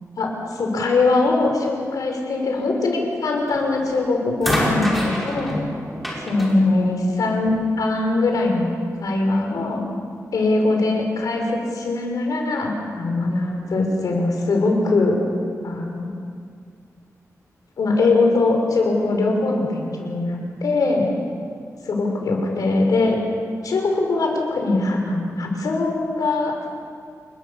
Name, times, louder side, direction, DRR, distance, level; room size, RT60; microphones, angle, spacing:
voice 1, 0.2-5.5 6.3-9.8 10.3-15.2 15.6-16.1 17.8-21.1 21.9-23.2 23.6-26.5, left 3 dB, 85° left, 1 dB, 6.0 m, -21 dB
sound 1, 3.5-3.8 4.4-7.7 8.7-8.8, equal, ahead, 5.6 m, -27 dB
29.0 x 21.5 x 7.2 m, 2.1 s
wide cardioid pair, 125°, 6 cm